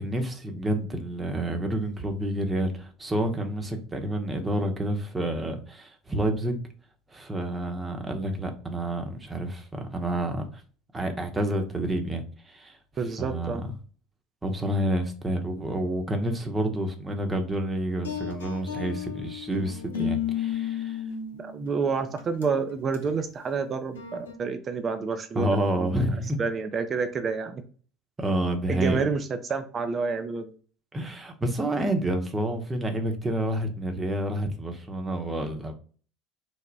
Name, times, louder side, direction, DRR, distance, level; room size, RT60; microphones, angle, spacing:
voice 1, 0.0-6.6 7.1-10.6 10.9-12.8 13.2-13.6 14.4-21.0 21.6-21.7 25.3-26.4 28.2-29.0 30.9-35.7, right 1 dB, 20° right, 0.9 m, -29 dB
voice 2, 13.0-13.7 20.0-20.1 21.4-25.9 26.4-27.6 28.7-30.5, right 5 dB, 35° right, 0.5 m, -29 dB
sound 1, 18.0-21.7 22.2-22.4 22.9-23.2 24.0-24.3, left 9 dB, 90° left, 0.7 m, -32 dB
3.3 x 2.1 x 3.9 m
hypercardioid pair, 80°, 0 cm